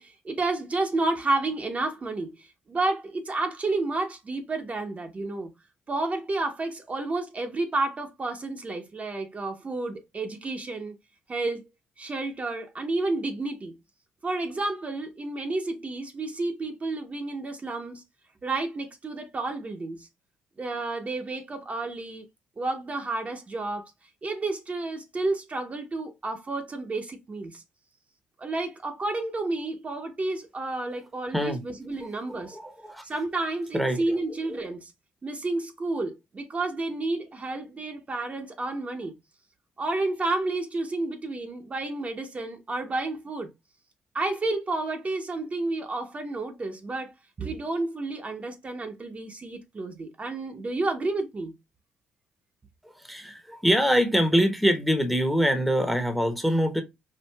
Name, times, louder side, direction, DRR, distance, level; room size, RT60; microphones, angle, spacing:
voice 1, 0.0-5.5 5.9-10.9 11.3-11.7 12.0-13.8 14.2-18.0 18.4-20.1 20.6-22.2 22.6-23.9 24.2-27.6 28.4-32.6 33.0-34.9 35.2-39.1 39.8-43.5 44.1-47.1 47.4-51.5, right 2 dB, 35° right, 0.8 m, -31 dB
voice 2, 32.3-33.0 33.7-34.2 34.5-34.7 53.0-56.8, equal, ahead, 0.9 m, -24 dB
4.5 x 2.5 x 2.3 m
hypercardioid pair, 50°, 4 cm